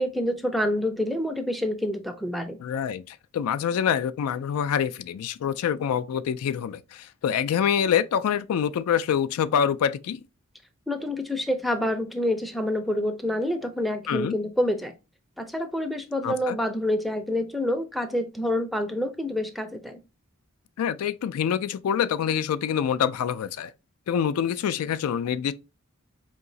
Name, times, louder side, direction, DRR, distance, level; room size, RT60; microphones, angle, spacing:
voice 1, 0.0-2.6 10.9-14.9 15.4-20.0, left 1 dB, ahead, 0.4 m, -27 dB
voice 2, 2.6-10.2 14.1-14.3 16.2-16.6 20.8-23.7 24.1-25.5, left 8 dB, 80° left, 0.3 m, -26 dB
4.6 x 2.9 x 2.6 m
head